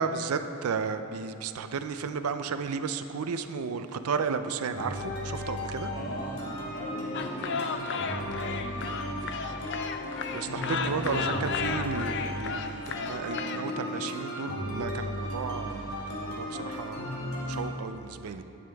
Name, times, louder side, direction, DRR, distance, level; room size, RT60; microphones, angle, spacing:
voice 1, 0.0-5.9 10.3-17.2 17.4-18.4, right 5 dB, 80° right, 10 dB, 0.5 m, -33 dB
sound 1, 4.7-17.7, left 1 dB, 85° left, 1.8 m, -35 dB
voice 2, 5.7-9.3 10.8-11.4, equal, 40° left, -3 dB, 1.7 m, -41 dB
sound 2, 7.1-13.6, left 5 dB, 55° left, 0.4 m, -34 dB
11.0 x 9.4 x 3.4 m, 2.9 s
head